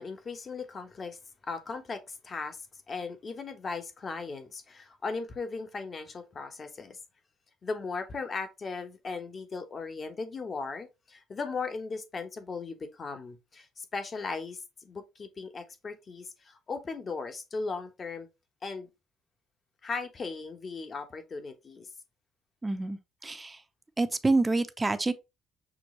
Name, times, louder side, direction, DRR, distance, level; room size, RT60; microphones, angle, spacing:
voice 1, 0.0-7.0 7.6-18.3 18.6-18.9 19.8-21.9, left 4 dB, 40° left, 1.0 m, -37 dB
voice 2, 22.6-23.6 24.0-25.1, right 3 dB, 20° right, 0.6 m, -27 dB
6.1 x 2.3 x 3.1 m
supercardioid pair, 65°, 0 cm